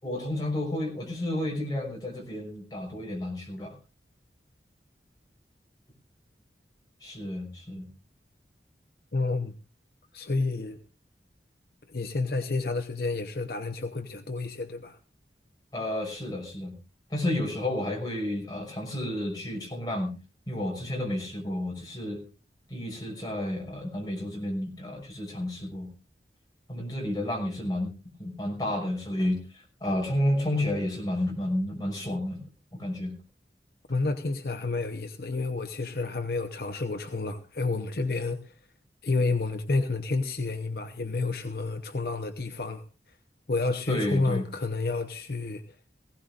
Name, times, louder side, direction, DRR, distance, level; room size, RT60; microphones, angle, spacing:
voice 1, 0.0-3.7 7.0-7.9 15.7-16.7 17.1-20.1 20.5-22.2 22.7-25.9 26.7-27.9 28.2-32.4 32.8-33.1 43.9-44.5, left 1 dB, 20° left, 6.0 m, -31 dB
voice 2, 9.1-9.5 10.1-10.8 11.9-15.0 33.9-38.5 39.0-43.2 43.5-45.8, left 3 dB, 55° left, 0.8 m, -30 dB
19.5 x 16.5 x 2.5 m
head